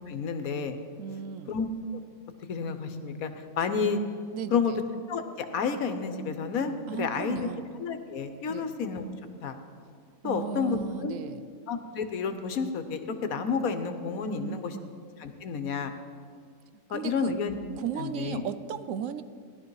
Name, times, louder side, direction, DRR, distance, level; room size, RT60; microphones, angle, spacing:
voice 1, 0.1-0.8 1.5-1.7 1.9-2.0 2.5-4.0 4.5-4.7 5.1-7.5 7.8-9.0 9.4-9.6 10.2-11.2 11.7-14.8 15.2-15.9 16.9-17.6 18.0-18.4, left 5 dB, 75° left, 8 dB, 1.4 m, -30 dB
voice 2, 1.0-1.5 4.3-4.8 6.9-7.7 8.5-8.7 10.2-11.5 14.2-14.9 16.9-17.3 17.8-19.2, right 8 dB, 70° right, 13 dB, 1.0 m, -36 dB
17.5 x 12.0 x 4.8 m, 2.1 s
omnidirectional pair, 1.5 m